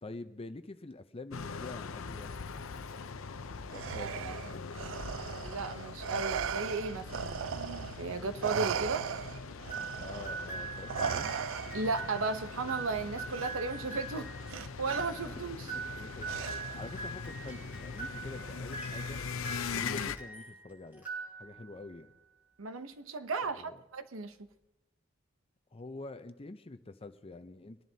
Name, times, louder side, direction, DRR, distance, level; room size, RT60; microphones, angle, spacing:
voice 1, 0.0-2.4 3.7-4.7 9.9-11.3 15.3-15.4 15.6-16.4 16.7-19.3 19.7-21.1 21.4-22.1 23.6-23.8 25.7-27.8, left 2 dB, 30° left, 10 dB, 0.6 m, -46 dB
sound 1, 1.3-20.2, left 5 dB, 85° left, 0.6 m, -42 dB
Respiratory sounds, 3.7-8.1 8.4-12.0 13.3-13.5 14.5-15.0 16.3-16.9, right 8 dB, 70° right, 0.3 m, -37 dB
voice 2, 4.0-4.3 5.4-9.0 11.7-14.3 14.8-15.7 22.6-24.4, right 3 dB, 90° right, 10 dB, 0.8 m, -35 dB
sound 2, 9.7-20.6 20.9-21.8, right 4 dB, 10° right, 5.4 m, -42 dB
22.5 x 10.5 x 2.8 m, 0.96 s
head